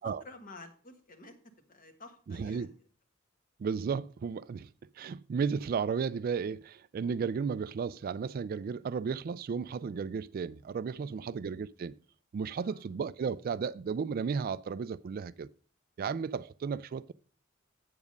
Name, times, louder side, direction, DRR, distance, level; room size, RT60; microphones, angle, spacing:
voice 1, 0.0-2.7 10.9-11.5 12.6-12.8, left 2 dB, 45° left, 1.5 m, -52 dB
voice 2, 2.3-2.7 3.6-4.7 5.0-11.9 12.3-15.5 16.0-17.1, right 6 dB, 45° right, 0.3 m, -34 dB
8.2 x 7.3 x 5.2 m
head